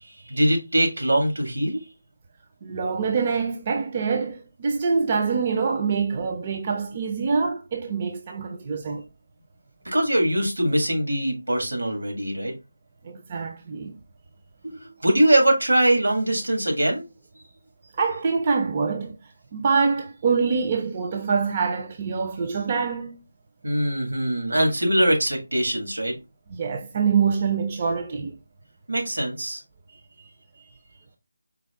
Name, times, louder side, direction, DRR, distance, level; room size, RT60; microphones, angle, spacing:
voice 1, 0.0-1.9 9.8-12.5 14.6-17.1 23.6-26.1 28.9-29.6 30.2-30.3 30.6-30.7, right 1 dB, 85° right, 1.6 m, -22 dB
voice 2, 2.6-9.1 13.0-14.0 18.0-19.2 19.5-23.2 26.5-28.4, right 5 dB, 25° right, 0.4 m, -25 dB
4.6 x 2.1 x 3.4 m
figure-of-eight pair, 170°, 0 cm